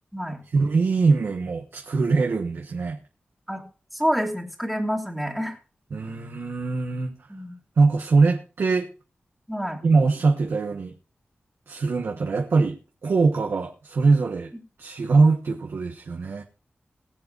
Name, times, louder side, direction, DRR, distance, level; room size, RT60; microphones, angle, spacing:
voice 1, 0.5-3.0 5.9-7.1 7.8-8.9 9.8-10.9 11.7-14.5 14.8-16.4, right 4 dB, 80° right, 2 dB, 1.3 m, -22 dB
voice 2, 3.9-5.6 7.3-7.6 9.5-9.8, equal, ahead, 1 dB, 2.5 m, -27 dB
21.5 x 7.8 x 2.6 m, 0.35 s
wide cardioid pair, 95°, 4 cm